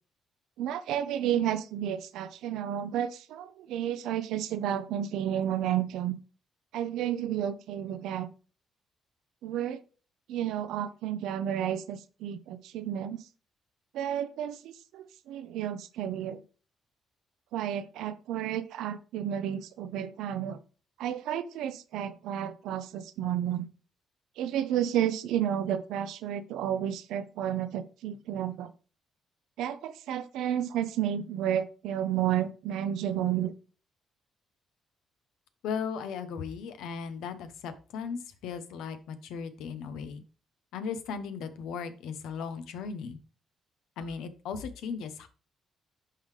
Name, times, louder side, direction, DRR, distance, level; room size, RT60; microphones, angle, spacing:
voice 1, 0.6-6.1 6.7-8.3 9.4-9.8 10.3-13.2 13.9-16.4 17.5-20.6 21.0-23.7 24.4-28.7 29.6-33.5, right 10 dB, 90° right, 0.6 m, -31 dB
voice 2, 35.6-40.2 40.7-43.2 44.0-45.3, left 6 dB, 90° left, 0.9 m, -37 dB
11.0 x 3.8 x 3.3 m
cardioid pair, 90°, 0 cm